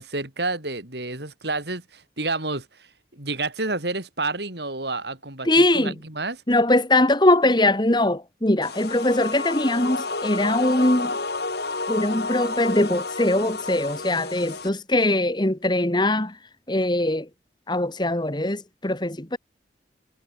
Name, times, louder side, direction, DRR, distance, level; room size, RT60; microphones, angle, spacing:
voice 1, 0.0-2.9 3.1-6.4, right 3 dB, 65° right, 5.6 m, -30 dB
voice 2, 5.4-6.0 6.5-11.1 11.9-16.4 16.7-17.3 17.7-19.4, left 1 dB, 25° left, 1.8 m, -21 dB
sound 1, 8.6-14.7, left 3 dB, 60° left, 3.8 m, -30 dB
head